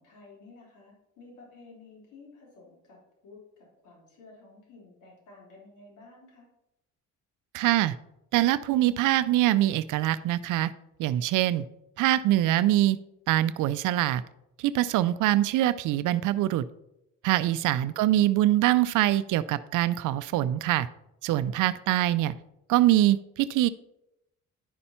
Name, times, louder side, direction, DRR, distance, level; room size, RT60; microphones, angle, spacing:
voice 1, 0.0-3.0 3.2-6.5 17.6-18.6, left 3 dB, 80° left, -4 dB, 3.5 m, -53 dB
voice 2, 7.5-7.9 8.3-10.7 11.0-11.6 12.0-13.0 13.3-14.2 14.6-16.6 17.2-20.9 21.2-22.3 22.7-23.7, right 14 dB, 85° right, 15 dB, 0.5 m, -24 dB
11.0 x 5.5 x 4.3 m, 0.85 s
cardioid pair, 90°, 30 cm